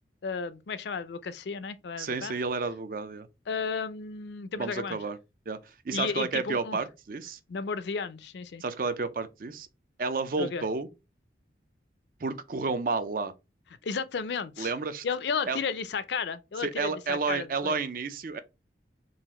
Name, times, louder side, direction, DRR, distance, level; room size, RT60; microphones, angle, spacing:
voice 1, 0.2-2.3 3.5-5.0 5.9-6.8 7.5-8.6 10.4-10.6 13.8-14.7 15.0-17.8, left 5 dB, 70° left, 0.4 m, -33 dB
voice 2, 2.0-3.3 4.6-5.2 5.5-5.6 5.8-7.4 8.6-9.7 10.0-10.9 12.2-13.3 14.6-15.0 15.5-15.6 16.6-18.4, right 4 dB, 50° right, 0.4 m, -31 dB
3.9 x 2.5 x 4.1 m
head